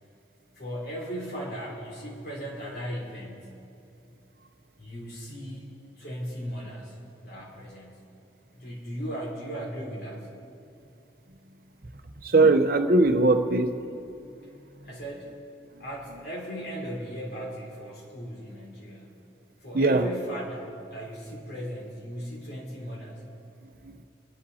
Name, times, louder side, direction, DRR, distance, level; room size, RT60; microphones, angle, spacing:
voice 1, 0.6-3.6 4.8-8.1 8.5-10.3 14.8-15.4 15.8-19.2 19.6-23.3, equal, 60° left, -4 dB, 3.8 m, -37 dB
voice 2, 12.2-13.8 14.4-14.5 19.7-20.1 23.8-24.0, right 2 dB, 50° right, 7 dB, 0.7 m, -20 dB
25.5 x 10.5 x 4.2 m, 2.6 s
head